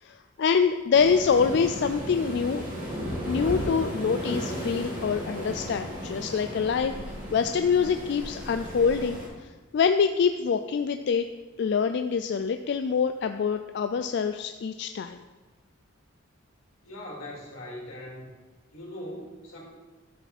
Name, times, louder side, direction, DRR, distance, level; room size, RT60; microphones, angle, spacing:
voice 1, 0.0-2.6 3.3-6.9 7.3-11.3 11.6-15.2, left 6 dB, 55° left, 8 dB, 0.3 m, -25 dB
Waves surf, 0.9-9.3, equal, 40° right, 2.9 m, -35 dB
voice 2, 16.8-18.3 18.7-19.6, left 1 dB, 85° left, -4 dB, 3.4 m, -40 dB
11.5 x 5.8 x 4.2 m, 1.3 s
head